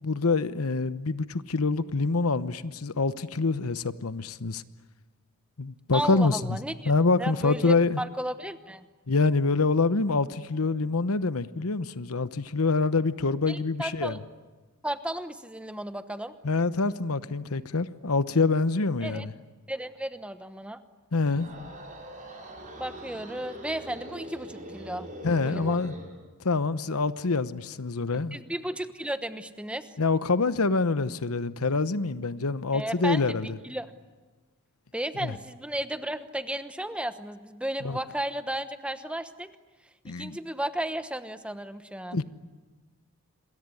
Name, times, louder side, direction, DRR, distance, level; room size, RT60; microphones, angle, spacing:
voice 1, 0.0-4.6 5.6-6.6 6.8-8.0 9.1-14.2 16.4-19.3 21.1-21.5 25.2-25.9 26.4-28.4 30.0-33.6 35.2-35.3 37.8-38.0 40.0-40.4 42.1-42.2, left 3 dB, 80° left, 1.0 m, -26 dB
voice 2, 5.9-6.9 7.2-8.8 13.5-14.2 14.8-16.3 19.0-19.3 19.7-20.8 22.8-25.1 25.4-25.8 28.1-29.9 32.7-33.3 33.6-33.9 34.9-39.5 40.0-42.2, right 1 dB, 5° right, 1.0 m, -34 dB
sound 1, 21.2-26.1, right 1 dB, 35° right, 7.2 m, -42 dB
27.0 x 22.0 x 9.8 m
head